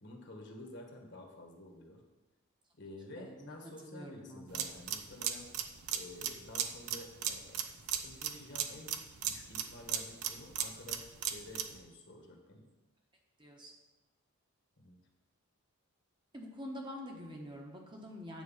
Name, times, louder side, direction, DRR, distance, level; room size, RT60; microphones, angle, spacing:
voice 1, 0.0-2.0 2.8-5.5 5.9-7.6 8.0-8.9 9.2-12.6 14.8-15.0, left 1 dB, 50° left, 2 dB, 1.5 m, -50 dB
voice 2, 3.2-3.6 3.8-4.7 13.4-13.7 16.3-18.4, left 1 dB, 20° right, 0 dB, 1.1 m, -46 dB
sound 1, 4.5-11.8, right 9 dB, 80° right, 0.8 m, -37 dB
9.2 x 4.7 x 7.2 m, 1.1 s
head